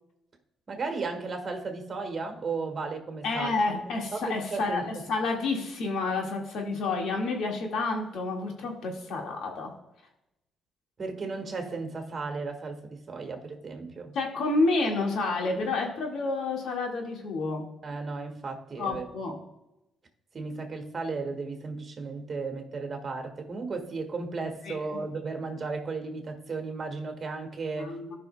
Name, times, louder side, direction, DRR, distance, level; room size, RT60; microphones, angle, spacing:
voice 1, 0.7-3.6 4.1-5.1 11.0-14.1 15.6-15.8 17.8-19.0 20.3-27.9, right 4 dB, 40° right, 1.6 m, -35 dB
voice 2, 3.2-9.7 14.1-17.6 18.8-19.4 24.7-24.8 27.8-28.2, left 3 dB, 75° left, 1.8 m, -29 dB
14.5 x 5.6 x 2.2 m
cardioid pair, 90°, 0 cm